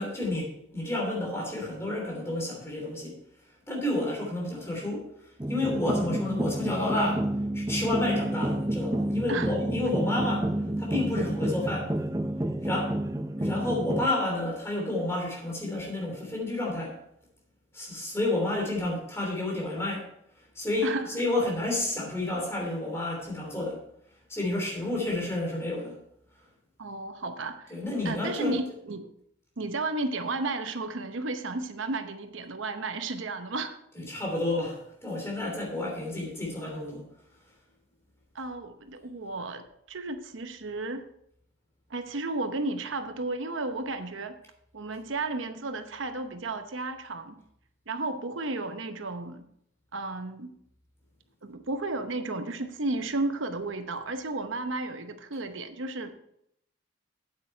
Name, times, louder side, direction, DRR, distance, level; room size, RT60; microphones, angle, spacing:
voice 1, 0.0-3.2 3.7-5.1 5.5-7.3 7.5-11.9 12.6-13.0 13.4-17.0 17.7-20.1 20.5-23.8 24.3-26.0 27.7-28.5 34.0-37.0, left 2 dB, 15° left, -1 dB, 3.0 m, -30 dB
sound 1, 5.4-14.1, right 1 dB, 15° right, 0.5 m, -29 dB
voice 2, 26.8-27.8 28.0-29.1 29.6-33.8 38.3-41.0 41.9-44.4 44.7-47.4 47.9-49.4 49.9-50.5 51.4-56.1, right 2 dB, 80° right, 8 dB, 0.8 m, -33 dB
8.7 x 8.7 x 4.4 m, 0.74 s
head